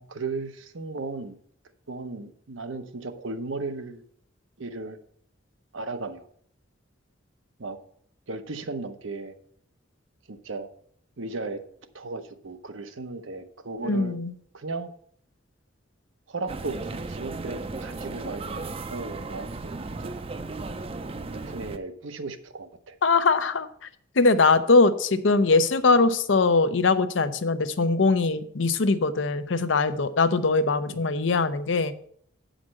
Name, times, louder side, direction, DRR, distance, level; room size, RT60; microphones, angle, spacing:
voice 1, 0.0-1.4 1.9-4.0 4.6-5.0 5.7-6.3 7.6-7.8 8.3-9.3 10.3-10.7 11.2-11.6 11.9-14.2 14.5-14.9 16.3-20.2 21.1-23.0 30.9-31.1, right 3 dB, 85° right, 8 dB, 0.9 m, -36 dB
voice 2, 13.8-14.3 23.0-23.7 24.2-31.9, left 3 dB, 75° left, 12 dB, 0.7 m, -21 dB
Quiet museum courtyard, 16.5-21.8, right 3 dB, 30° right, 0.5 m, -35 dB
8.6 x 5.1 x 6.3 m, 0.62 s
head